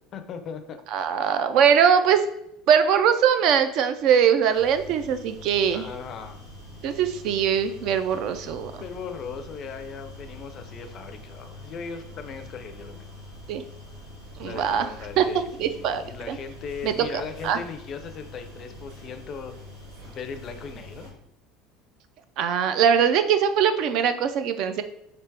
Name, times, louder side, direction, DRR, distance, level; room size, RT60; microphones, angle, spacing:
voice 1, 0.1-0.8 5.7-6.5 8.8-13.1 14.4-19.5 20.0-21.1, left 6 dB, 30° left, 8 dB, 0.4 m, -38 dB
voice 2, 0.9-2.2 2.7-5.9 6.8-8.8 13.5-13.6 14.4-14.9 15.2-15.3 15.6-16.4 16.8-17.6 22.4-24.8, right 8 dB, 50° right, 10 dB, 0.3 m, -22 dB
sound 1, 4.5-21.1, left 1 dB, 80° right, 1.5 m, -44 dB
3.4 x 2.8 x 4.6 m, 0.78 s
cardioid pair, 170°, 0 cm